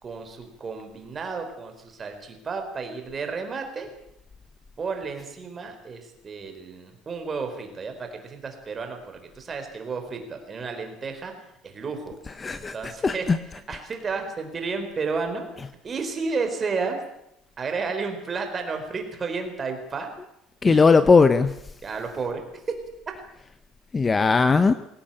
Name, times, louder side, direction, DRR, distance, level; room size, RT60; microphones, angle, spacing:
voice 1, 0.0-3.9 4.8-11.3 11.6-12.1 12.5-13.2 13.7-15.5 15.8-17.0 17.6-20.1 20.6-20.8 21.8-22.8, right 4 dB, 25° right, 5 dB, 4.3 m, -32 dB
voice 2, 12.4-13.4 20.6-21.5 23.9-24.7, left 4 dB, 20° left, 12 dB, 0.8 m, -18 dB
22.5 x 17.0 x 9.0 m, 0.80 s
cardioid pair, 160°, 0 cm